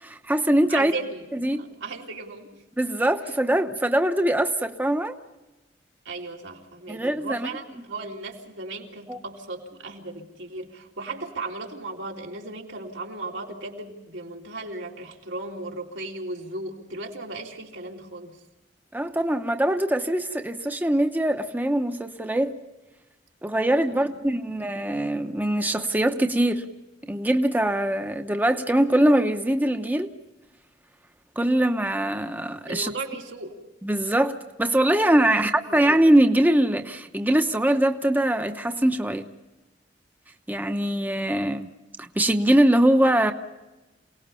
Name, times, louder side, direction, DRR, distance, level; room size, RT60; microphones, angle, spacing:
voice 1, 0.0-0.9 1.3-1.6 2.8-5.1 6.9-7.5 9.1-9.2 18.9-22.5 23.4-26.7 27.0-30.1 31.4-32.9 33.8-39.3 40.5-41.7 42.0-43.3, right 1 dB, 10° right, 6 dB, 0.9 m, -22 dB
voice 2, 0.7-1.2 1.5-2.6 6.0-18.4 23.9-24.2 32.7-33.6 35.3-35.8, right 2 dB, 90° right, 0 dB, 3.4 m, -36 dB
28.0 x 19.0 x 5.6 m, 1.0 s
head